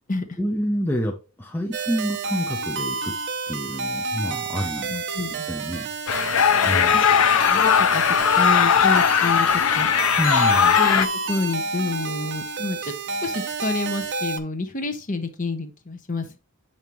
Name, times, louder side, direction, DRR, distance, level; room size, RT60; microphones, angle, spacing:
voice 1, 0.4-3.1 3.5-4.9 5.3-5.9 6.6-7.0 10.2-10.8, equal, 10° left, 1 dB, 0.6 m, -28 dB
sound 1, 1.7-14.4, right 4 dB, 50° right, 0.6 m, -30 dB
voice 2, 4.9-5.8 6.5-7.1 7.5-9.9 10.7-16.4, left 3 dB, 35° left, 7 dB, 0.9 m, -29 dB
sound 2, 6.1-11.1, left 8 dB, 65° left, 0.5 m, -18 dB
7.1 x 5.4 x 3.0 m, 0.32 s
head